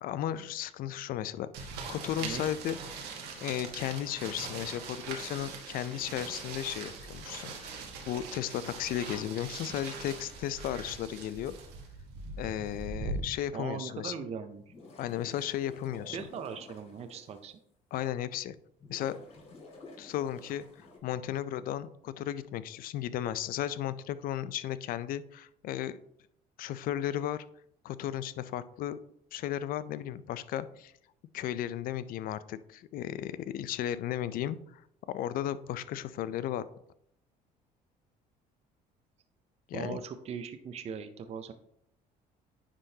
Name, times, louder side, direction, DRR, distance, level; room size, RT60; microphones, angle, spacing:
voice 1, 0.0-2.8 3.4-11.6 12.4-14.1 15.0-16.2 17.9-18.6 18.9-19.2 20.0-20.6 21.0-26.0 26.6-27.4 27.8-29.0 29.3-30.9 31.3-34.8 35.1-36.7 39.7-40.0, left 11 dB, 60° left, 15 dB, 0.4 m, -35 dB
sound 1, 1.5-13.2, right 4 dB, 75° right, 1.3 m, -41 dB
voice 2, 13.5-14.6 16.1-17.5 39.7-41.5, right 6 dB, 40° right, 9 dB, 0.5 m, -39 dB
sound 2, 14.6-17.4 18.0-18.1 18.8-21.0, left 2 dB, 40° left, 2.3 m, -52 dB
9.7 x 3.8 x 2.8 m, 0.71 s
cardioid pair, 105°, 16 cm